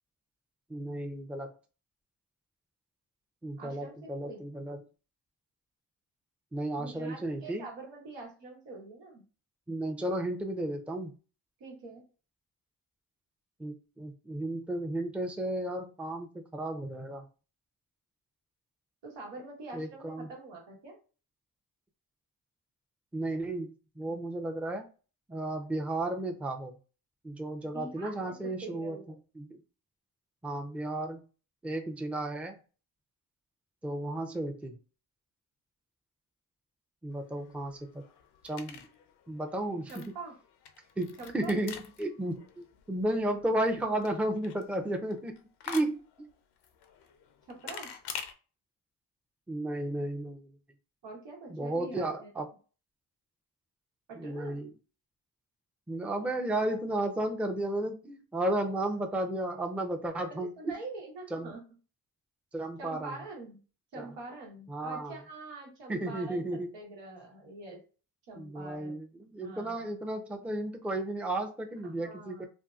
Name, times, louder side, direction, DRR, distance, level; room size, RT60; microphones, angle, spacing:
voice 1, 0.7-1.5 3.4-4.8 6.5-7.6 9.7-11.1 13.6-17.3 19.7-20.3 23.1-23.7 24.0-24.9 25.3-26.8 27.2-29.0 29.4-29.5 30.4-31.2 31.6-32.6 33.8-34.8 37.0-38.0 38.4-38.9 39.3-40.0 41.0-45.4 45.7-46.3 49.5-50.5 51.5-52.5 54.2-54.7 55.9-60.5 61.3-61.5 62.5-63.2 64.0-64.1 64.7-65.1 65.9-66.7 68.4-72.4, right 1 dB, 5° right, 4 dB, 0.5 m, -33 dB
voice 2, 3.6-4.4 6.8-9.2 11.6-12.0 19.0-21.0 27.6-29.0 39.9-40.4 41.2-41.7 47.5-47.9 51.0-52.3 54.1-54.6 60.3-61.6 62.8-63.6 63.9-67.8 68.3-69.0 69.4-69.9 71.9-72.5, right 3 dB, 90° right, -1 dB, 1.1 m, -45 dB
sound 1, 37.1-48.3, left 7 dB, 70° left, 0.6 m, -47 dB
2.7 x 2.6 x 2.3 m, 0.35 s
cardioid pair, 55°, 41 cm